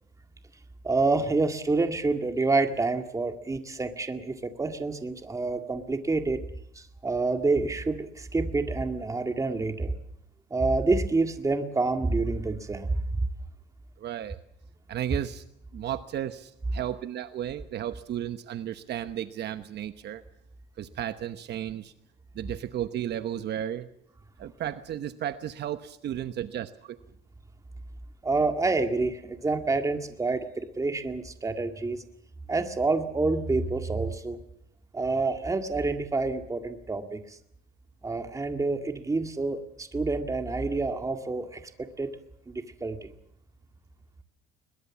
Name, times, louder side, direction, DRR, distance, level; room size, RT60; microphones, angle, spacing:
voice 1, 0.8-6.4 6.8-10.0 10.5-13.0 28.2-32.0 32.5-34.4 34.9-37.2 38.0-42.1 42.5-43.1, right 3 dB, 15° right, 6 dB, 2.0 m, -28 dB
voice 2, 14.0-14.4 14.9-15.4 15.7-20.2 20.8-21.9 22.3-23.9 24.4-27.0, right 11 dB, 55° right, 11 dB, 1.0 m, -34 dB
22.0 x 21.5 x 7.2 m, 0.73 s
cardioid pair, 135°, 20 cm